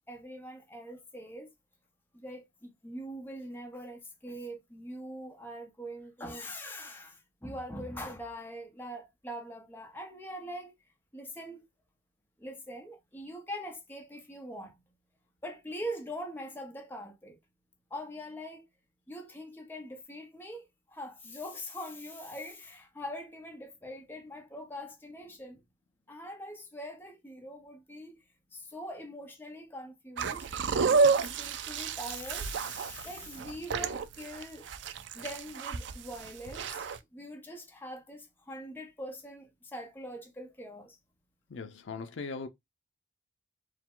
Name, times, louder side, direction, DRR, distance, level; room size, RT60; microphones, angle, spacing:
voice 1, 0.1-1.5 2.1-10.7 11.1-11.7 12.4-14.8 15.4-17.4 17.9-18.6 19.1-25.6 26.1-28.2 28.5-30.5 30.7-34.7 35.1-41.0, equal, 10° left, 0.8 m, -43 dB
sound 1, 30.2-37.0, right 5 dB, 70° right, 0.4 m, -30 dB
voice 2, 41.5-42.5, left 4 dB, 75° left, 0.5 m, -39 dB
4.6 x 2.2 x 3.6 m
head